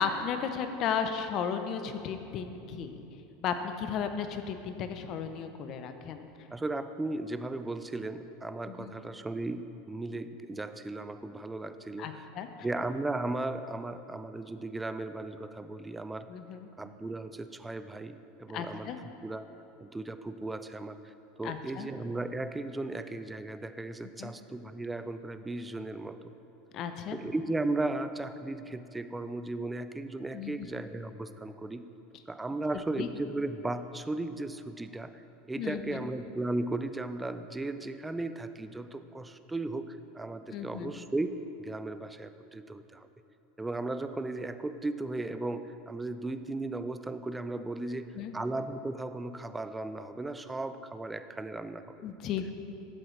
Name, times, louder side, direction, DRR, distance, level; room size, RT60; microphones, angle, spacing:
voice 1, 0.0-3.0 3.4-6.3 8.7-8.9 12.0-12.5 16.3-16.7 18.5-19.0 21.4-21.9 24.2-24.3 26.7-27.2 30.3-30.7 33.0-33.1 35.6-36.0 40.5-40.9 48.1-48.3 52.0-52.5, left 7 dB, 45° left, 8 dB, 0.7 m, -34 dB
voice 2, 6.5-12.2 12.6-16.3 16.8-18.9 19.2-19.4 19.8-26.3 27.1-31.9 32.3-43.1 43.6-52.0, right 2 dB, 10° right, 10 dB, 0.4 m, -36 dB
12.0 x 7.7 x 3.2 m, 2.8 s
supercardioid pair, 125°, 0 cm